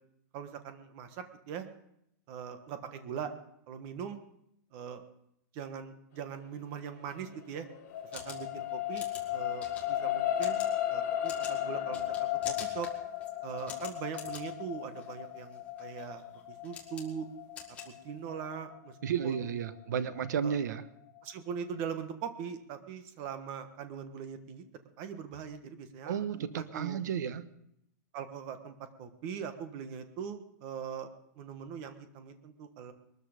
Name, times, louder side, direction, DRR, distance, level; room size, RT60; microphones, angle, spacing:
voice 1, 0.3-1.7 2.3-3.3 3.7-4.2 4.7-5.0 5.5-7.7 8.1-12.9 13.4-16.2 16.6-17.3 17.8-19.0 19.2-19.5 20.4-20.5 21.2-24.6 25.0-27.0 28.1-31.1 31.4-32.9, right 7 dB, 30° right, 9 dB, 1.3 m, -41 dB
sound 1, 7.1-19.6 20.2-20.3, left 12 dB, 40° left, 3.3 m, -35 dB
sound 2, 7.9-18.5, left 6 dB, 15° left, 1.9 m, -48 dB
voice 2, 19.0-20.8 26.0-27.4, right 8 dB, 70° right, 13 dB, 1.2 m, -32 dB
21.5 x 13.0 x 5.1 m, 0.78 s
supercardioid pair, 175°, 10 cm